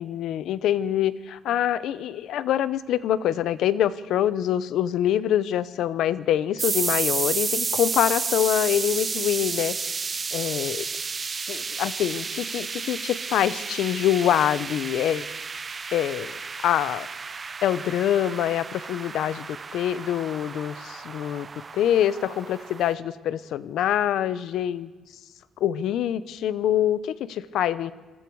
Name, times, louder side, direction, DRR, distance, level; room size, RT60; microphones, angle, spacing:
voice 1, 0.0-10.8 11.5-15.3 15.9-16.3 16.6-17.1 17.6-21.5 21.7-24.9 25.6-27.9, left 11 dB, 70° left, 15 dB, 0.8 m, -25 dB
sound 1, 6.6-22.9, right 5 dB, 25° right, 0.5 m, -32 dB
26.5 x 21.0 x 4.7 m, 1.3 s
cardioid pair, 160°, 0 cm